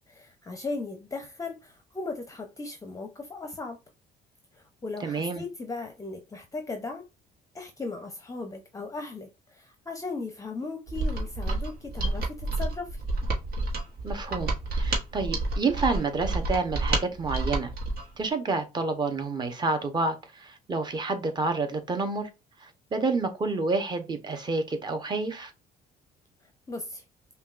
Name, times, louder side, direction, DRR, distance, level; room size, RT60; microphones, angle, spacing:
voice 1, 0.1-3.8 4.5-7.1 7.5-13.0 26.7-27.0, left 3 dB, 20° left, 0.6 m, -37 dB
voice 2, 5.0-5.4 14.0-17.7 18.2-22.3 22.6-25.5, right 3 dB, 25° right, 0.8 m, -29 dB
Mechanisms, 10.9-18.1, right 2 dB, 65° right, 1.2 m, -29 dB
5.4 x 2.3 x 2.4 m
cardioid pair, 110°, 17 cm